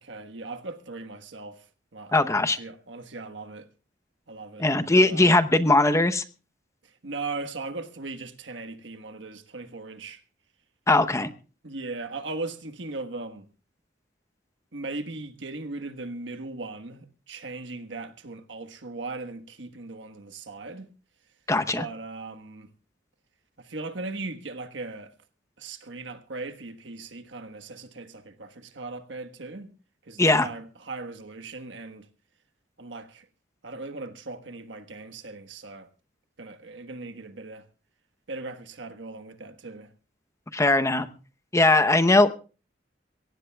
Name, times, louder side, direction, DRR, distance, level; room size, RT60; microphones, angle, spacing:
voice 1, 0.0-1.6 1.9-3.7 4.3-4.6 5.0-5.3 7.0-10.2 11.6-13.5 14.7-20.9 21.7-22.7 23.6-25.1 25.6-29.7 30.1-32.0 32.8-33.2 33.6-35.9 36.4-37.6 38.3-39.9, right 3 dB, 70° right, 1.4 m, -38 dB
voice 2, 2.1-2.6 4.6-6.2 10.9-11.3 21.5-21.8 30.2-30.5 40.5-41.1 41.5-42.3, left 2 dB, 15° left, 0.8 m, -20 dB
23.5 x 17.5 x 2.3 m
head